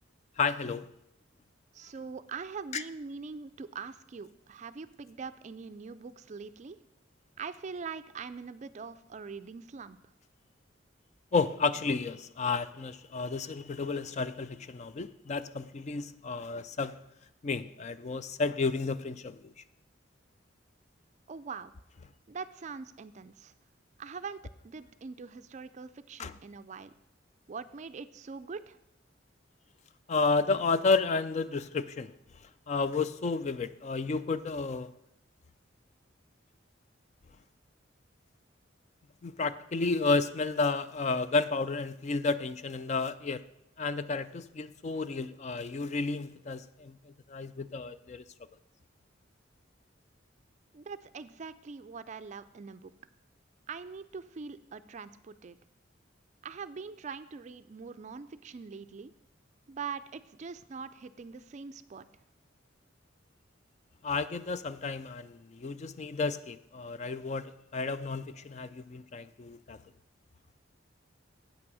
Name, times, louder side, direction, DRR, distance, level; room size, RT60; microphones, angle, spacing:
voice 1, 0.4-0.9 2.7-2.8 11.3-17.0 17.4-19.5 26.2-26.3 30.1-32.1 32.7-34.9 39.2-43.4 43.8-48.2 64.0-69.8, left 4 dB, 35° left, 0.4 m, -31 dB
voice 2, 1.7-6.8 7.4-10.0 21.3-21.7 22.3-23.5 24.0-26.9 27.5-28.8 50.7-52.9 53.7-55.6 56.4-59.1 59.7-62.1, right 5 dB, 40° right, 0.4 m, -43 dB
8.5 x 6.1 x 6.1 m
head